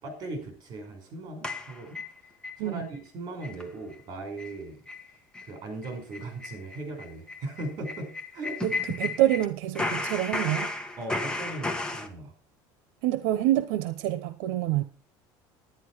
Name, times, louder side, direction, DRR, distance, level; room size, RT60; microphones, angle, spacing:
voice 1, 0.0-2.0 2.6-4.8 5.4-8.6 11.0-12.3, right 2 dB, 45° right, 6 dB, 5.3 m, -38 dB
sound 1, 1.4-2.6 3.0-3.1 3.4-3.6 3.9-4.0 4.4-4.6 4.9-5.1 5.3-5.5 5.8-9.5 9.8-12.1, left 2 dB, 10° left, 1.4 m, -33 dB
voice 2, 8.6-10.7 13.0-14.8, right 14 dB, 85° right, 12 dB, 0.9 m, -26 dB
11.0 x 10.5 x 4.8 m, 0.38 s
cardioid pair, 150°, 10 cm